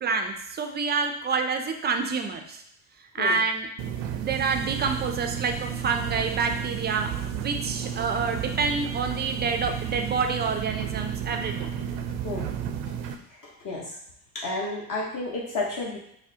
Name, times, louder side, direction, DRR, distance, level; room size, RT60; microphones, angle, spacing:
voice 1, 0.0-2.6 3.1-3.7 4.1-11.7, right 4 dB, 25° right, 5 dB, 0.3 m, -28 dB
sound 1, 3.8-13.2, right 8 dB, 75° right, 0.5 m, -32 dB
voice 2, 13.3-14.0 14.3-16.0, left 2 dB, 45° left, -4 dB, 1.0 m, -32 dB
4.7 x 2.1 x 2.7 m, 0.72 s
supercardioid pair, 95°, 43 cm